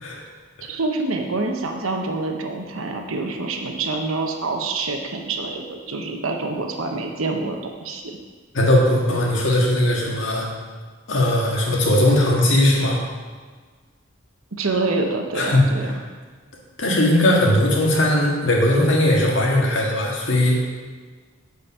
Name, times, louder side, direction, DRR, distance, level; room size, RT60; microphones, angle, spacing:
voice 1, 0.6-8.2 14.6-16.0, right 3 dB, 80° right, 3 dB, 1.0 m, -26 dB
voice 2, 8.5-10.5 11.1-13.0 15.4-15.7 16.8-20.6, left 1 dB, 65° left, -3 dB, 1.9 m, -18 dB
9.4 x 5.3 x 5.5 m, 1.5 s
head